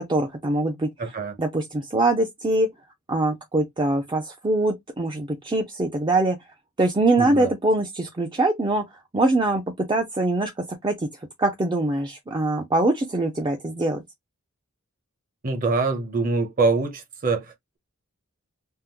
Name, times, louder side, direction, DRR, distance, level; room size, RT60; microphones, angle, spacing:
voice 1, 0.0-0.9 1.4-2.7 3.1-6.4 6.8-8.8 9.1-9.6 9.9-10.5 10.8-11.1 11.4-14.0, right 2 dB, 20° right, 0.4 m, -23 dB
voice 2, 1.0-1.3 7.2-7.5 15.4-17.8, right 3 dB, 40° right, 0.8 m, -24 dB
3.5 x 2.0 x 2.9 m
head